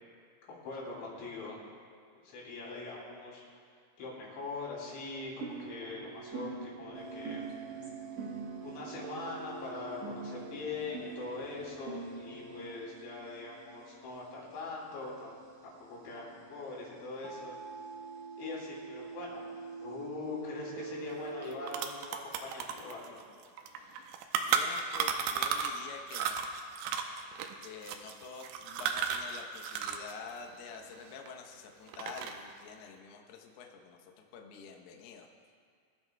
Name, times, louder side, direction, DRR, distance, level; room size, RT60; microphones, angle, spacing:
voice 1, 0.5-1.6 2.1-3.4 4.0-7.4 8.6-15.3 15.6-17.6 18.4-19.5 19.8-23.2, left 3 dB, 65° left, -4 dB, 5.1 m, -42 dB
sound 1, 5.4-12.8, right 4 dB, 70° right, 3.4 m, -44 dB
sound 2, 6.9-21.6, right 4 dB, 50° right, 1.6 m, -47 dB
sound 3, 21.1-21.2 21.4-25.8 26.1-30.1 30.4-31.5 31.9-32.5, right 7 dB, 90° right, 2.7 m, -34 dB
voice 2, 24.5-26.4 27.6-35.3, left 6 dB, 90° left, 2 dB, 2.2 m, -47 dB
22.5 x 12.5 x 2.3 m, 2.1 s
omnidirectional pair, 6.0 m